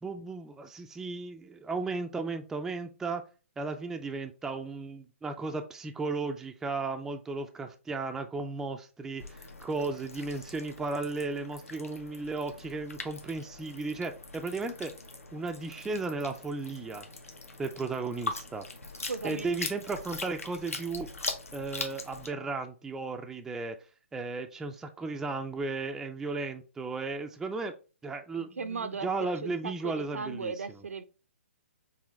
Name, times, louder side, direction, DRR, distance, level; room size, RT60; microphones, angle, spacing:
voice 1, 0.0-3.2 3.6-14.9 15.3-17.1 17.6-18.7 19.2-21.1 21.5-23.8 24.1-27.7 28.0-30.5, right 3 dB, 5° right, 0.3 m, -35 dB
sound 1, 9.2-22.3, left 3 dB, 85° left, 1.0 m, -42 dB
voice 2, 19.1-19.5 28.4-29.1 29.4-31.0, right 4 dB, 80° right, 0.6 m, -37 dB
4.9 x 3.3 x 3.1 m
figure-of-eight pair, 135°, 7 cm